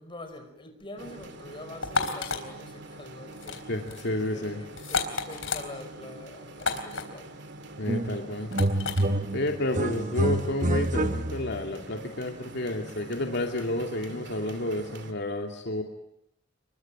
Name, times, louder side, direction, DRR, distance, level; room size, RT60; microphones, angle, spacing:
voice 1, 0.0-3.7 4.2-7.6, left 1 dB, 25° left, 5.2 m, -44 dB
sound 1, 1.0-15.1, right 2 dB, 60° right, 2.5 m, -45 dB
sound 2, 1.8-2.4 3.3-3.6 3.9-4.1 4.8-5.6 6.6-7.0 8.5-9.0, left 4 dB, 80° left, 3.9 m, -30 dB
voice 2, 3.7-4.6 7.8-8.5 9.3-15.8, left 1 dB, 60° left, 2.5 m, -30 dB
sound 3, 7.9-8.2 8.5-11.6, right 1 dB, 40° right, 1.0 m, -27 dB
27.5 x 23.0 x 8.9 m
head